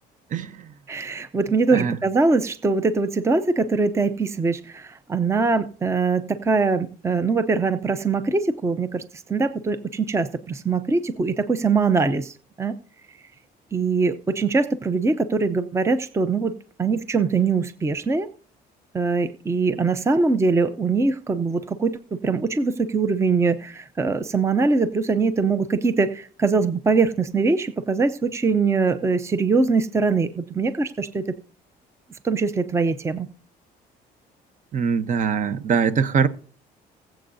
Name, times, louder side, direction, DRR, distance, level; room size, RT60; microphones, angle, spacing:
voice 1, 0.9-9.0 9.3-12.8 13.7-18.3 18.9-31.2 32.2-33.3, right 4 dB, 15° right, 0.6 m, -22 dB
voice 2, 34.7-36.3, right 6 dB, 50° right, 0.9 m, -22 dB
20.0 x 7.7 x 2.7 m
cardioid pair, 110°, 17 cm